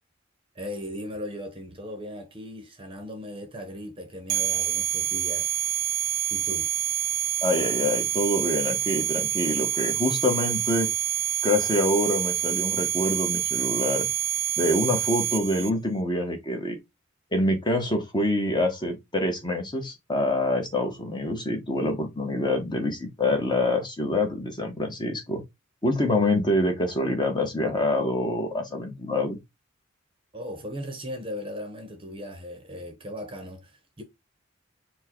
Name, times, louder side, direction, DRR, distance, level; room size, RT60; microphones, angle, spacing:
voice 1, 0.5-5.5 6.3-6.7 30.3-34.0, left 1 dB, 25° right, 0.9 m, -37 dB
sound 1, 4.3-15.7, right 11 dB, 50° right, 0.4 m, -27 dB
voice 2, 7.4-10.9 11.4-14.1 14.6-16.8 17.3-25.4 25.8-29.4, left 1 dB, 25° left, 1.2 m, -26 dB
4.5 x 2.3 x 4.4 m
head